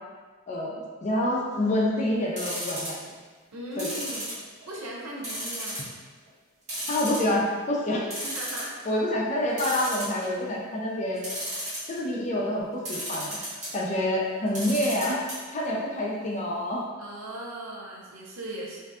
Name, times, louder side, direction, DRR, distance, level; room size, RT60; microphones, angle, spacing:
voice 1, 1.0-2.9 3.8-3.9 6.9-8.1 8.9-11.2 11.9-13.4 13.7-15.2 15.5-16.8, left 1 dB, 35° left, -3 dB, 0.4 m, -27 dB
sound 1, 2.4-3.1 3.8-4.8 5.2-5.9 6.3-6.4 6.7-7.5 7.8-7.9 8.1-8.7 9.6-10.5 11.2-12.0 12.9-13.7 14.5-15.3 15.6-15.7 16.0-16.1, right 1 dB, 35° right, 1.0 m, -34 dB
voice 2, 3.5-4.3 4.7-5.8 8.2-9.0 17.0-18.8, right 1 dB, 85° right, -4 dB, 0.6 m, -38 dB
2.5 x 2.2 x 2.4 m, 1.4 s
head